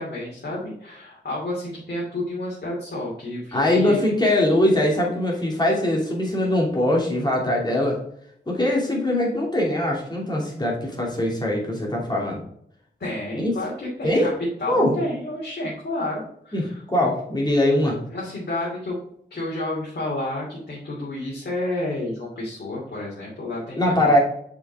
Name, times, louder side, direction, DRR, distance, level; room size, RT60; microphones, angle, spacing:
voice 1, 0.0-4.0 13.0-14.3 14.6-16.8 18.1-19.0 19.3-24.1, left 1 dB, 65° left, -7 dB, 2.7 m, -30 dB
voice 2, 3.5-8.0 8.5-12.4 13.4-13.5 14.0-14.3 14.7-15.0 16.5-18.0 23.8-24.2, left 1 dB, 25° left, -2 dB, 2.6 m, -21 dB
6.3 x 5.4 x 3.5 m, 0.70 s
wide cardioid pair, 110°, 18 cm